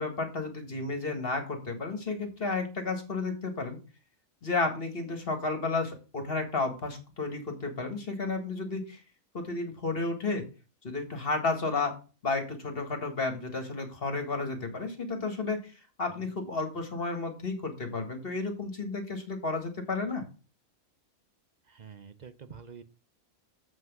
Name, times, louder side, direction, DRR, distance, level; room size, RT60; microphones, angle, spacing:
voice 1, 0.0-3.8 4.4-9.0 9.3-10.4 10.8-12.0 12.2-15.6 16.0-20.2, left 3 dB, 45° left, 5 dB, 1.9 m, -32 dB
voice 2, 21.7-22.8, right 6 dB, 45° right, 12 dB, 0.6 m, -47 dB
7.5 x 6.0 x 5.9 m, 0.33 s
omnidirectional pair, 1.4 m